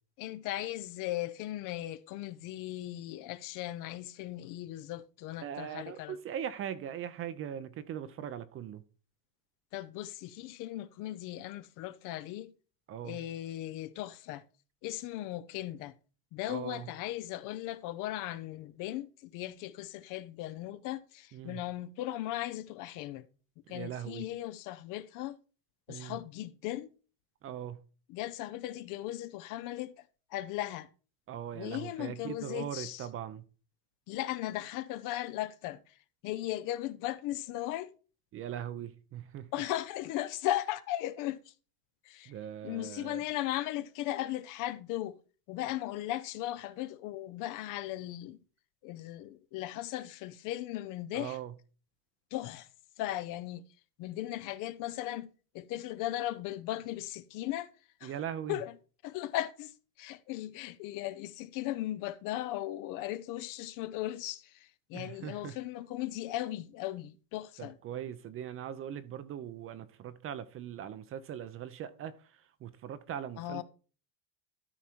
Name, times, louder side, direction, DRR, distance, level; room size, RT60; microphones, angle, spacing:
voice 1, 0.2-6.2 9.7-12.5 13.0-14.4 14.8-15.9 16.3-23.2 23.7-25.4 25.9-26.9 28.1-29.9 30.3-30.9 31.5-33.1 34.1-35.8 36.2-37.9 39.5-41.4 42.0-42.3 42.6-45.2 45.5-48.4 48.8-51.4 52.3-52.7 53.0-53.6 54.0-55.3 55.5-57.7 58.0-58.1 58.5-58.7 59.0-67.8 73.4-73.6, left 14 dB, 45° left, 0.6 m, -37 dB
voice 2, 5.4-8.8 12.9-13.2 16.5-16.9 21.3-21.6 23.7-24.2 25.9-26.2 27.4-27.8 31.3-33.4 38.3-39.5 42.3-43.2 51.1-51.5 58.0-58.6 64.9-65.6 67.6-72.1 72.6-73.6, right 10 dB, 30° right, 0.6 m, -40 dB
13.0 x 4.8 x 4.4 m
supercardioid pair, 130°, 47 cm